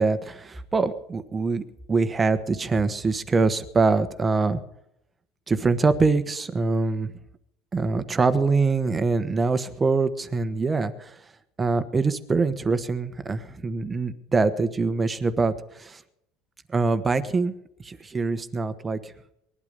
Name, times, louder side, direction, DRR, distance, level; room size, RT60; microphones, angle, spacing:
voice 1, 0.0-4.6 5.5-7.1 7.7-11.1 11.6-15.5 15.8-16.0 16.7-17.5 17.8-19.0, right 4 dB, 15° right, 11 dB, 1.2 m, -24 dB
20.5 x 12.0 x 5.4 m, 0.79 s
cardioid pair, 145°, 0 cm